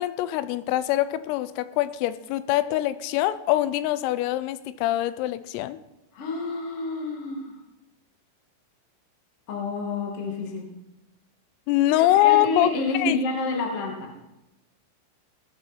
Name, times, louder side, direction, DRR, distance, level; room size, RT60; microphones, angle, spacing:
voice 1, 0.0-5.8 11.7-13.2, left 14 dB, 90° left, 15 dB, 3.3 m, -24 dB
voice 2, 6.1-7.5 9.5-10.7 12.0-14.1, left 3 dB, 45° left, 1 dB, 1.9 m, -29 dB
17.0 x 9.9 x 4.4 m, 0.95 s
omnidirectional pair, 5.8 m